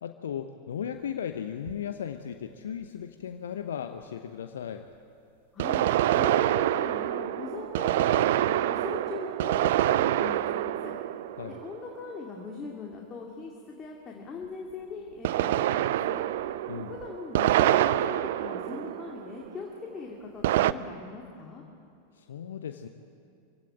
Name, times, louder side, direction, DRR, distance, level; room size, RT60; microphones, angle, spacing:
voice 1, 0.0-4.9 11.4-11.6 16.7-17.0 22.2-22.9, left 8 dB, 65° left, 8 dB, 0.9 m, -36 dB
sound 1, 1.7-1.8 5.6-12.1 15.2-19.5 20.4-20.7, right 13 dB, 55° right, 0.6 m, -26 dB
voice 2, 5.5-5.9 6.1-10.9 11.5-16.2 16.8-19.7 19.9-21.6, left 4 dB, 25° left, -1 dB, 2.5 m, -40 dB
25.0 x 16.5 x 8.7 m, 2.5 s
figure-of-eight pair, 90°, 0 cm